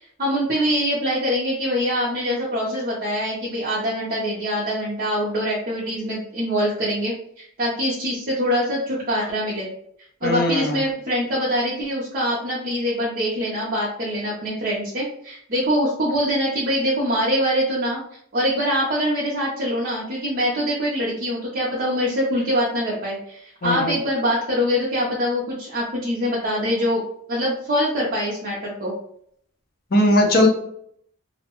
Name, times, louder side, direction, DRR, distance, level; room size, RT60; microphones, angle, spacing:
voice 1, 0.0-9.7 10.2-18.0 18.3-27.0 27.3-28.9, equal, 40° right, -6 dB, 0.5 m, -24 dB
voice 2, 10.2-10.8 23.6-24.0 29.9-30.5, left 1 dB, 45° left, 1 dB, 0.5 m, -19 dB
2.6 x 2.1 x 2.8 m, 0.68 s
head